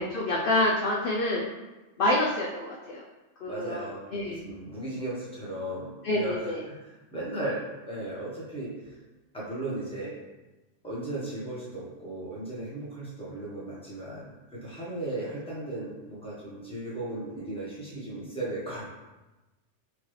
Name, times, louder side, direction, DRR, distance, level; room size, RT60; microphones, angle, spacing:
voice 1, 0.0-1.5 2.0-3.0 3.4-4.4 6.0-6.6, left 1 dB, 60° left, -3 dB, 0.6 m, -27 dB
voice 2, 3.4-7.6 7.9-9.0 9.3-10.1 10.8-18.9, right 2 dB, 5° left, -8 dB, 1.1 m, -36 dB
4.7 x 2.7 x 3.2 m, 1.1 s
omnidirectional pair, 1.3 m